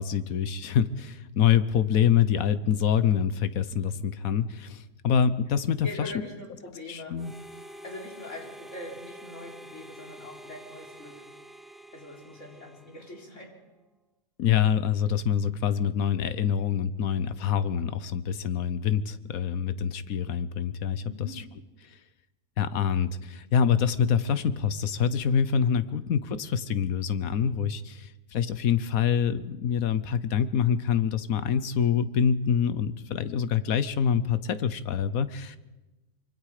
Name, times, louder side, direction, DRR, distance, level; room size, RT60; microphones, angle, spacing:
voice 1, 0.0-6.1 6.9-7.3 14.4-21.0 21.3-21.4 22.6-35.6, left 8 dB, 80° left, 14 dB, 1.3 m, -26 dB
voice 2, 5.8-7.2 7.8-11.2 11.9-13.5 21.1-21.4, left 1 dB, 60° left, 0 dB, 4.5 m, -42 dB
Harmonica, 7.2-13.5, equal, ahead, 0.8 m, -47 dB
25.5 x 24.0 x 5.0 m, 1.1 s
omnidirectional pair, 1.5 m